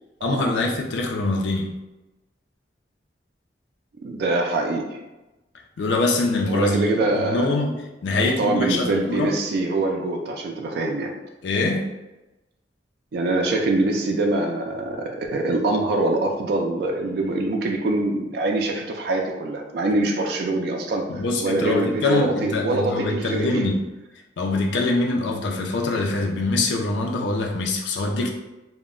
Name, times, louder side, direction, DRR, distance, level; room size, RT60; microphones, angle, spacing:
voice 1, 0.2-1.7 5.8-7.8 8.0-9.3 11.4-11.9 21.1-23.8 24.4-28.3, left 2 dB, 80° left, 1 dB, 0.4 m, -24 dB
voice 2, 4.0-5.0 6.5-7.5 8.2-11.1 13.1-23.7, right 2 dB, 60° right, 1 dB, 0.3 m, -24 dB
2.1 x 2.0 x 3.6 m, 1.0 s
head